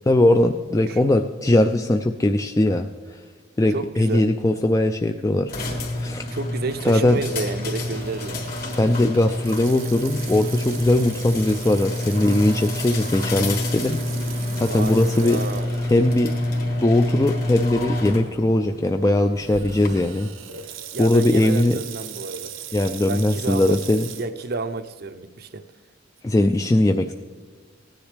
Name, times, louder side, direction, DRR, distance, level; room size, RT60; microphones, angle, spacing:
voice 1, 0.1-3.2 3.6-5.5 5.9-6.3 6.8-7.2 8.7-15.4 15.9-16.3 16.8-20.3 21.0-21.8 22.7-24.1 26.2-27.1, left 1 dB, 15° left, 6 dB, 0.3 m, -20 dB
voice 2, 3.7-4.3 6.3-8.4 14.7-15.8 20.9-22.5 23.1-23.8 24.2-25.6, right 3 dB, 50° right, 12 dB, 0.5 m, -30 dB
sound 1, 5.5-19.9, left 1 dB, 50° left, 1.8 m, -28 dB
Water tap faucet / Sink (filling or washing), 7.8-16.2 16.7-16.8 17.5-17.8 19.4-24.3, right 10 dB, 80° right, 0.8 m, -40 dB
16.5 x 10.0 x 3.4 m, 1.5 s
head